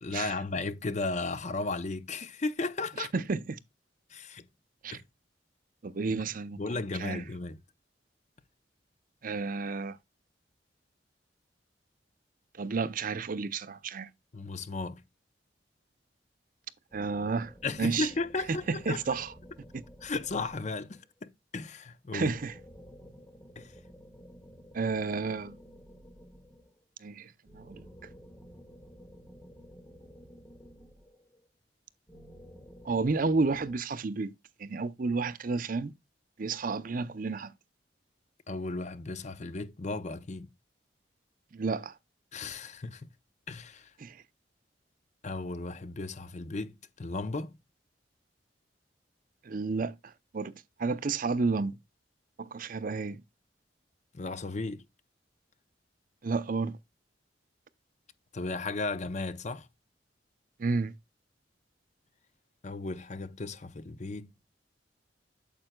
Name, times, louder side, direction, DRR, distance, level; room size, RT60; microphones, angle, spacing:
voice 1, 0.0-3.1 4.1-4.5 4.9-5.0 6.1-6.2 6.5-7.6 14.3-15.0 17.6-19.0 20.0-22.3 23.6-23.7 38.5-40.5 42.3-43.1 43.5-43.9 45.2-47.6 54.1-54.8 58.3-59.7 62.6-64.3, left 3 dB, 40° left, 0.6 m, -35 dB
voice 2, 3.0-3.6 4.8-5.0 5.8-6.6 7.0-7.2 9.2-10.0 12.6-14.1 16.9-17.5 17.8-18.1 18.5-19.3 22.1-22.5 24.7-25.6 27.0-27.8 32.8-34.3 34.6-35.9 36.4-37.5 41.5-41.9 44.0-44.2 49.4-50.5 50.8-51.8 52.4-53.2 56.2-56.8 60.6-60.9, right 4 dB, 50° right, 0.6 m, -31 dB
sound 1, 16.9-21.1 22.2-26.8 27.4-31.5 32.1-33.8, equal, 15° left, 1.8 m, -52 dB
8.9 x 7.6 x 2.2 m
head